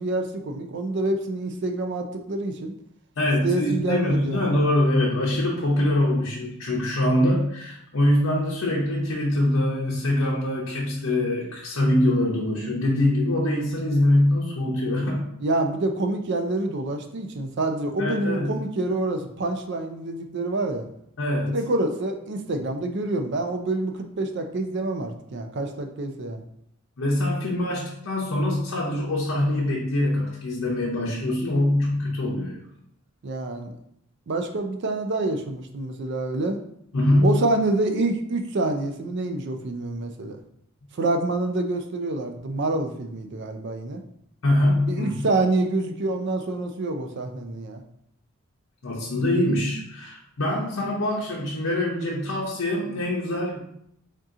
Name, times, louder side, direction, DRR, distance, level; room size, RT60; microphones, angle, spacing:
voice 1, 0.0-2.7 3.3-4.4 15.4-20.9 21.5-26.4 33.2-33.7 34.3-36.6 37.2-40.4 40.9-44.0 44.9-47.8, right 2 dB, 55° right, 5 dB, 0.4 m, -27 dB
voice 2, 3.2-15.3 18.0-18.6 21.2-21.6 27.0-32.6 36.9-37.4 44.4-45.3 48.8-53.6, left 1 dB, 80° left, -5 dB, 0.7 m, -23 dB
3.6 x 2.7 x 3.6 m, 0.74 s
head